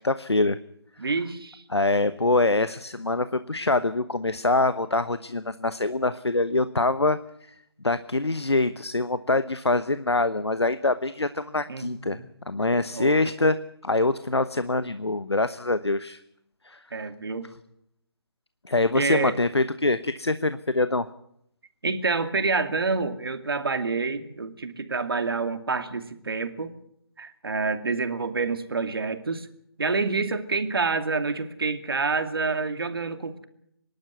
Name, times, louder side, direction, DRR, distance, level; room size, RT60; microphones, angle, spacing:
voice 1, 0.0-0.6 1.7-7.2 7.8-12.2 12.5-16.2 16.6-16.8 18.7-21.1, left 2 dB, 85° left, 13 dB, 1.1 m, -24 dB
voice 2, 1.0-1.6 11.7-12.3 12.9-13.2 16.9-17.5 18.9-19.4 21.8-26.7 27.2-29.5 29.8-33.5, right 4 dB, 60° right, 8 dB, 2.4 m, -28 dB
25.5 x 12.0 x 9.5 m, 0.75 s
figure-of-eight pair, 150°, 14 cm